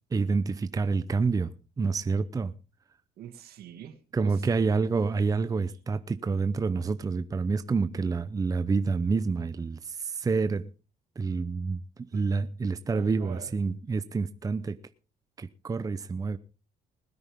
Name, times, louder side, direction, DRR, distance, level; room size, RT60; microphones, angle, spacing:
voice 1, 0.1-2.5 4.1-10.7 11.2-14.8 15.4-16.4, right 4 dB, 20° right, 0.7 m, -28 dB
voice 2, 3.2-4.4 12.1-12.2 12.9-13.5, right 10 dB, 65° right, 2.0 m, -45 dB
20.5 x 9.6 x 3.6 m
cardioid pair, 110°, 17 cm